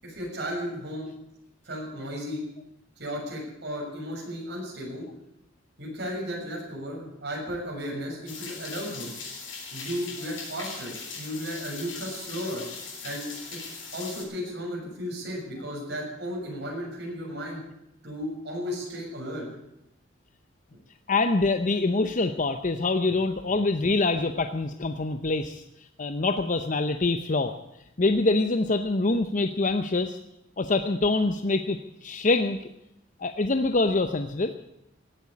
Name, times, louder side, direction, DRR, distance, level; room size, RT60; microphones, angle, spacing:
voice 1, 0.0-1.1 1.6-2.4 3.0-5.1 5.8-9.1 9.7-12.7 13.0-13.6 13.9-17.6 18.0-19.5, equal, 60° right, -2 dB, 7.0 m, -34 dB
sound 1, 8.3-14.2, left 4 dB, 85° left, 7.1 m, -40 dB
voice 2, 21.1-25.6 26.0-27.5 28.0-30.2 30.6-32.6 33.2-34.6, left 3 dB, 40° left, 8 dB, 0.7 m, -25 dB
17.0 x 8.9 x 9.5 m, 0.83 s
head